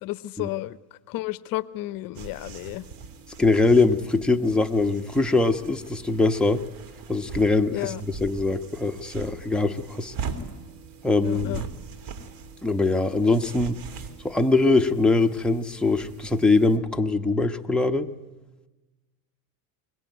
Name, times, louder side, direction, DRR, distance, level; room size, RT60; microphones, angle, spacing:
voice 1, 0.0-0.8 1.1-2.8 7.7-8.0 11.2-11.6, left 17 dB, 55° left, 16 dB, 0.8 m, -32 dB
sound 1, 2.1-16.8, right 5 dB, 55° right, 3.4 m, -41 dB
voice 2, 3.4-6.6 7.1-10.1 11.0-11.6 12.6-13.8 14.2-18.1, left 3 dB, ahead, 3 dB, 1.1 m, -22 dB
24.0 x 21.5 x 9.3 m, 1.1 s
supercardioid pair, 115°, 42 cm